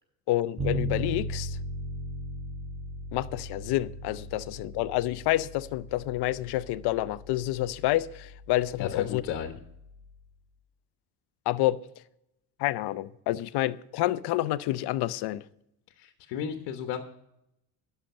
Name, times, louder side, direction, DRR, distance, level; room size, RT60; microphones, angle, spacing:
voice 1, 0.3-1.6 3.1-9.2 11.5-11.8 12.6-15.4, left 15 dB, 70° left, 0.7 m, -28 dB
Bass guitar, 0.6-10.3, equal, 20° right, 3.7 m, -38 dB
voice 2, 8.8-9.5 16.0-17.0, left 8 dB, 90° left, 1.3 m, -34 dB
11.5 x 6.8 x 8.9 m
cardioid pair, 125°, 40 cm